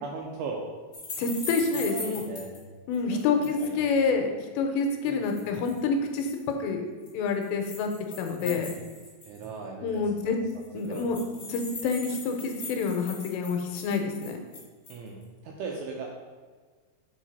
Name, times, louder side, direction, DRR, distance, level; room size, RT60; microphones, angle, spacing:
voice 1, 0.0-0.7 1.7-2.5 3.0-3.9 5.0-5.3 8.4-8.7 9.3-10.4 10.7-11.1 14.9-16.1, right 4 dB, 85° right, 0 dB, 2.3 m, -38 dB
sound 1, 0.9-2.6 2.9-3.6 5.1-5.8 6.2-6.4 7.1-9.6 9.9-10.0 10.2-10.3 10.5-15.1, left 2 dB, 35° left, 1.5 m, -40 dB
voice 2, 1.2-2.2 2.9-6.3 6.6-6.8 7.1-7.9 8.2-8.7 9.8-10.4 10.7-11.2 11.5-14.4, left 4 dB, 85° left, 4 dB, 2.8 m, -27 dB
7.6 x 3.9 x 5.4 m, 1.5 s
omnidirectional pair, 5.1 m